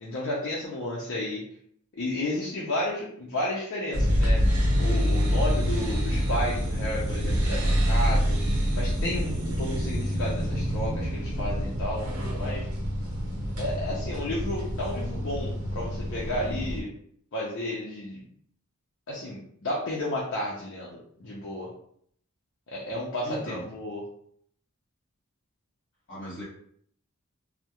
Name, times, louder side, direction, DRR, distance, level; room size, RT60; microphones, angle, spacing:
voice 1, 0.0-1.4 1.9-4.4 4.8-8.4 8.7-12.1 12.3-12.7 13.6-16.9 17.3-18.2 19.1-21.7 22.7-24.0, left 1 dB, 60° left, -5 dB, 0.5 m, -32 dB
sound 1, 3.9-16.8, equal, 75° right, 0.7 m, -26 dB
voice 2, 23.2-23.7 26.1-26.4, equal, 45° left, -7 dB, 1.1 m, -38 dB
2.3 x 2.1 x 2.8 m, 0.65 s
head